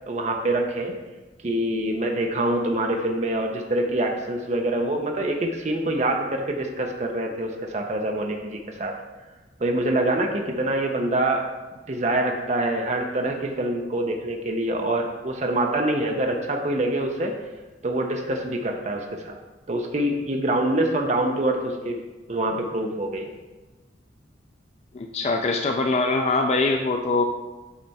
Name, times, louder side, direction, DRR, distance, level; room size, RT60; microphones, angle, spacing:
voice 1, 0.1-0.9 1.4-8.9 9.6-11.5 11.9-17.3 17.8-19.4 19.7-22.0 22.3-23.3, right 1 dB, 40° right, 2 dB, 0.6 m, -25 dB
voice 2, 24.9-27.2, left 3 dB, 35° left, 3 dB, 0.4 m, -23 dB
8.5 x 3.3 x 4.1 m, 1.2 s
head